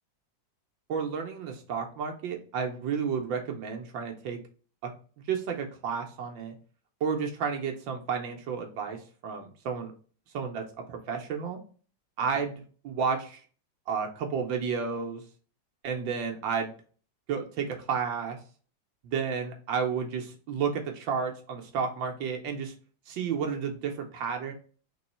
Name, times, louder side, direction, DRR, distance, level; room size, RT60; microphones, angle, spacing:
voice 1, 0.9-4.4 4.8-4.9 5.3-6.6 7.0-9.9 10.3-11.6 12.2-13.4 13.9-15.2 15.8-16.7 17.3-18.4 19.0-22.7 23.1-24.5, right 6 dB, 80° right, 3 dB, 1.5 m, -32 dB
4.1 x 3.0 x 4.2 m, 0.41 s
omnidirectional pair, 2.1 m